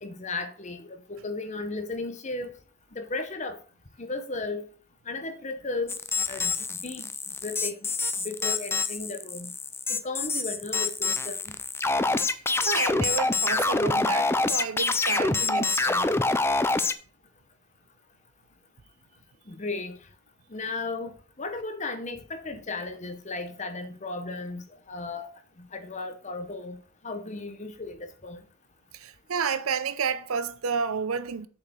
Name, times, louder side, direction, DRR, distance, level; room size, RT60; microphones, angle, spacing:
voice 1, 0.0-2.5 2.9-3.6 4.0-4.7 5.1-6.0 6.3-6.5 6.8-7.0 7.4-7.8 8.2-9.5 9.9-11.5 19.5-20.0 20.5-25.3 25.6-26.8 27.0-28.4, left 3 dB, 30° left, 0.8 m, -35 dB
sound 1, 5.9-16.9, left 3 dB, 10° left, 0.4 m, -26 dB
voice 2, 12.3-16.2 28.9-31.5, right 6 dB, 75° right, 0.6 m, -31 dB
7.1 x 4.6 x 6.7 m
head